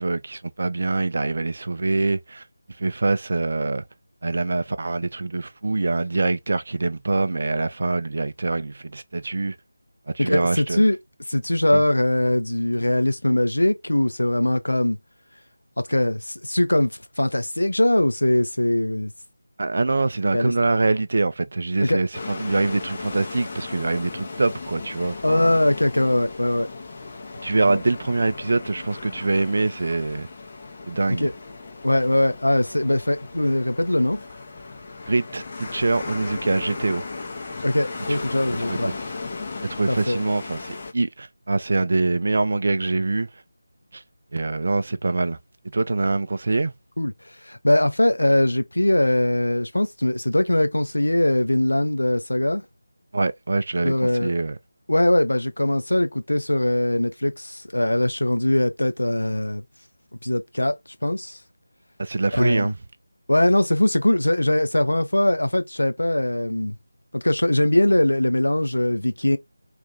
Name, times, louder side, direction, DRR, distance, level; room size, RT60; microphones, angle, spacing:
voice 1, 0.0-2.5 2.8-3.8 4.2-9.6 10.1-10.8 11.7-11.8 19.6-25.5 27.4-30.3 30.9-31.3 35.1-37.1 38.1-38.2 38.7-38.9 39.6-43.4 43.9-44.0 44.3-45.4 45.6-46.7 53.1-54.6 62.0-62.8, right 3 dB, 45° right, 0.4 m, -24 dB
voice 2, 10.2-11.0 11.3-15.0 15.8-19.1 20.3-20.5 21.8-22.0 25.2-26.7 31.2-31.3 31.8-34.2 37.6-38.9 39.9-40.2 47.0-47.1 47.4-52.6 53.8-54.3 54.9-59.6 60.2-60.8 61.0-61.4 62.4-62.7 63.3-66.8 67.1-69.4, left 1 dB, 70° left, 0.5 m, -21 dB
sound 1, 22.1-40.9, left 3 dB, 25° left, 0.6 m, -36 dB
2.6 x 2.4 x 3.8 m
figure-of-eight pair, 160°, 0 cm